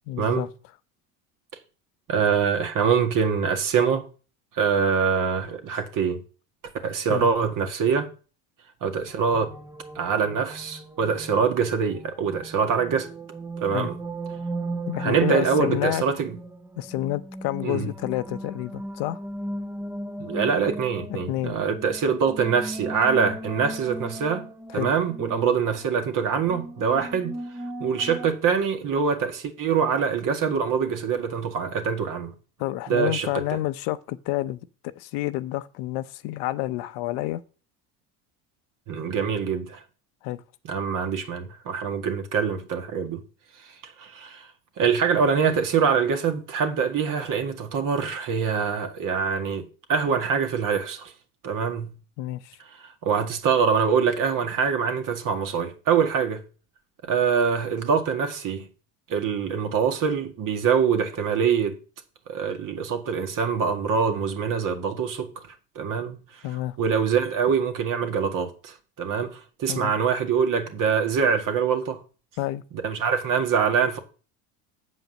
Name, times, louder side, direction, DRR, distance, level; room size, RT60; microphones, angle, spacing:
voice 1, 0.1-0.5 7.1-7.3 13.7-13.9 14.9-16.0 16.8-19.2 21.3-21.6 24.7-24.9 32.6-37.4 40.2-40.4 52.2-52.6 66.4-66.8 69.7-69.9 72.4-72.6, left 16 dB, 65° left, 0.8 m, -29 dB
voice 2, 2.1-4.1 4.5-6.2 6.8-8.1 8.8-9.5 10.0-13.1 13.6-14.0 15.0-16.4 17.6-17.9 20.2-24.5 24.7-27.3 27.8-32.3 32.9-33.6 38.9-39.8 40.7-43.2 43.6-44.5 44.8-51.1 51.4-51.9 52.8-56.4 57.1-58.7 59.1-61.8 62.3-66.4 66.8-72.0 72.8-74.0, right 6 dB, 50° right, 2.0 m, -24 dB
sound 1, 9.1-28.3, right 1 dB, 5° right, 0.8 m, -37 dB
7.8 x 5.1 x 6.5 m
supercardioid pair, 100°, 42 cm